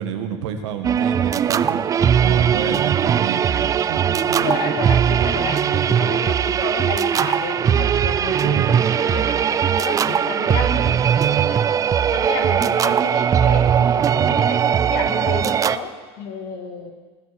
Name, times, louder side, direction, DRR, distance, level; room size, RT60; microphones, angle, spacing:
voice 1, 0.0-1.8 2.2-4.5 8.4-8.7, right 8 dB, 85° right, 6 dB, 1.6 m, -29 dB
sound 1, 0.8-15.8, right 8 dB, 25° right, 0.3 m, -19 dB
voice 2, 4.3-11.4 12.1-16.9, left 4 dB, 65° left, 4 dB, 2.2 m, -31 dB
17.0 x 8.8 x 6.8 m, 1.4 s
supercardioid pair, 125°, 15 cm